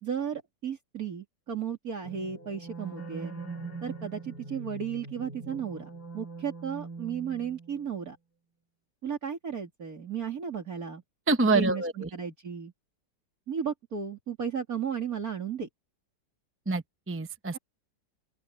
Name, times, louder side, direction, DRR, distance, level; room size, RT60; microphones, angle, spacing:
voice 1, 0.0-3.3 3.8-8.2 9.0-11.0 11.5-12.7 13.5-15.7 17.5-17.6, right 7 dB, 60° right, 3.3 m, -34 dB
sound 1, 2.0-7.9, right 3 dB, 70° left, 2.9 m, -42 dB
voice 2, 11.3-11.9 16.7-17.6, right 3 dB, 15° right, 0.4 m, -26 dB
open air
omnidirectional pair, 1.8 m